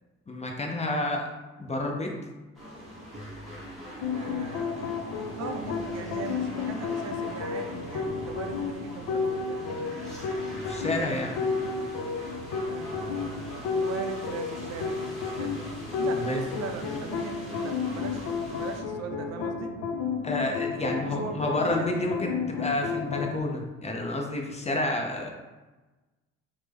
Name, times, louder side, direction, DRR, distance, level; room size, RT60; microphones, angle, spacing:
voice 1, 0.3-1.3 1.6-2.1 10.7-11.4 16.2-16.4 20.2-25.3, left 2 dB, 20° left, 1 dB, 0.5 m, -29 dB
sound 1, 2.5-18.8, equal, ahead, 1.0 m, -42 dB
sound 2, 4.0-23.4, left 5 dB, 75° left, 0.5 m, -32 dB
voice 2, 4.1-4.9 5.2-10.1 12.7-15.6 16.0-19.7 20.8-22.1, right 6 dB, 60° right, 5 dB, 0.4 m, -40 dB
3.2 x 2.0 x 3.4 m, 1.2 s
cardioid pair, 90°, 30 cm